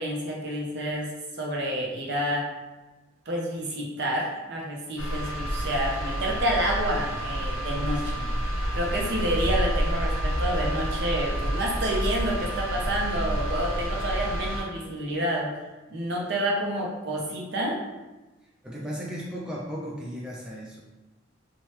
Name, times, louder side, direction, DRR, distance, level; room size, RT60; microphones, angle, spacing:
voice 1, 0.0-2.5 3.3-8.3 8.7-15.5 15.9-17.8, right 1 dB, 55° right, -1 dB, 0.6 m, -29 dB
sound 1, 5.0-14.6, equal, 85° left, 0.6 m, -29 dB
voice 2, 18.6-20.8, equal, 5° right, -5 dB, 0.3 m, -35 dB
3.0 x 2.2 x 2.9 m, 1.1 s
head